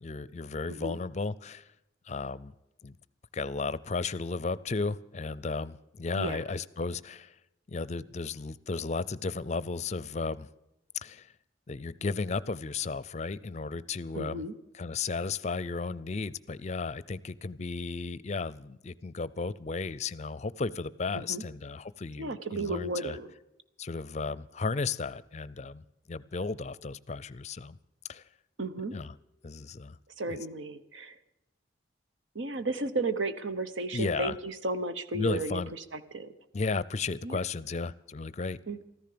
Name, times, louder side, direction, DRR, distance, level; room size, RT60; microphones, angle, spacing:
voice 1, 0.0-1.7 2.1-2.5 2.8-3.0 3.3-7.3 7.7-10.5 11.0-11.3 11.7-14.4 14.8-23.2 23.8-25.8 26.1-27.8 28.1-28.2 28.9-29.1 29.4-30.0 30.3-30.4 33.9-34.4 35.1-35.7 36.5-38.6, left 4 dB, 35° left, 19 dB, 0.5 m, -34 dB
voice 2, 0.7-1.0 6.2-6.4 14.1-14.5 21.1-21.4 22.2-23.3 28.6-28.9 30.2-31.2 32.3-36.3 37.2-37.4 38.7-38.8, right 2 dB, 90° right, 11 dB, 1.1 m, -34 dB
14.0 x 14.0 x 6.8 m, 0.88 s
head